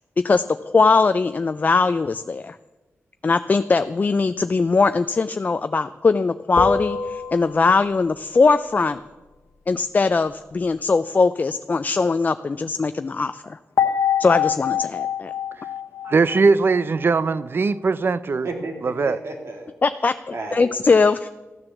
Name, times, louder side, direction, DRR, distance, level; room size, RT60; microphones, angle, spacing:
voice 1, 0.2-2.6 3.2-9.0 9.7-13.6 14.2-15.3 19.8-21.3, left 4 dB, 35° left, 11 dB, 0.4 m, -20 dB
sound 1, 6.6-8.1 13.8-17.1, left 8 dB, 80° left, 1.0 m, -25 dB
voice 2, 16.0-18.5 18.8-19.2, right 4 dB, 50° right, 16 dB, 0.5 m, -20 dB
voice 3, 18.4-19.7 20.3-20.7, right 3 dB, 65° right, 3 dB, 2.5 m, -32 dB
14.0 x 9.8 x 7.1 m, 1.2 s
wide cardioid pair, 120°, 5 cm